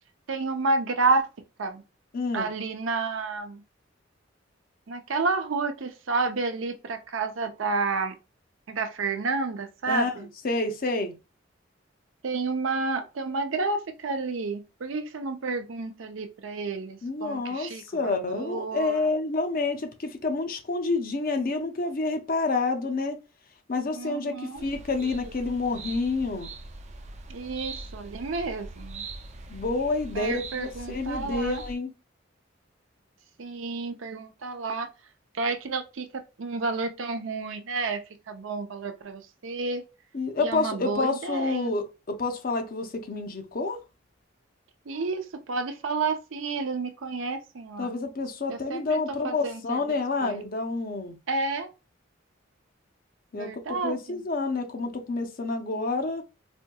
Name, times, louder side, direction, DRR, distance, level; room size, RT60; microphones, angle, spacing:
voice 1, 0.3-1.3 1.6-1.8 2.3-3.6 4.9-8.2 8.7-10.3 12.2-19.1 24.0-24.6 27.3-29.0 30.1-31.6 33.4-34.9 35.3-39.9 40.4-41.7 44.9-47.9 48.5-50.4 51.3-51.7 53.3-54.2, right 3 dB, 85° right, 0.6 m, -30 dB
voice 2, 2.1-2.5 9.9-10.1 10.4-11.1 17.0-23.2 23.7-26.5 29.5-31.9 40.1-43.8 47.8-51.2 53.3-56.2, left 3 dB, 45° left, 0.6 m, -28 dB
sound 1, 24.6-31.7, right 3 dB, 35° right, 0.5 m, -41 dB
4.3 x 2.7 x 2.2 m
head